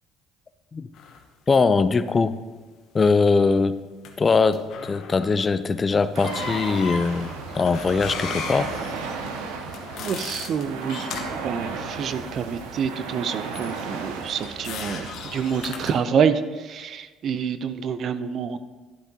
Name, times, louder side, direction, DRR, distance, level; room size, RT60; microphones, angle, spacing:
Creaking door, 0.9-1.2 4.1-4.2 4.5-5.5 6.0-11.4 13.5-16.0, left 6 dB, 65° left, 1.1 m, -37 dB
voice 1, 1.5-2.4 2.9-3.8 4.2-8.7, left 4 dB, 35° left, 13 dB, 0.5 m, -21 dB
sound 1, 6.1-16.0, right 4 dB, 80° right, 1.0 m, -35 dB
voice 2, 10.0-18.6, right 7 dB, 55° right, 12 dB, 0.6 m, -27 dB
11.5 x 11.5 x 2.8 m, 1.3 s
hypercardioid pair, 65°, 0 cm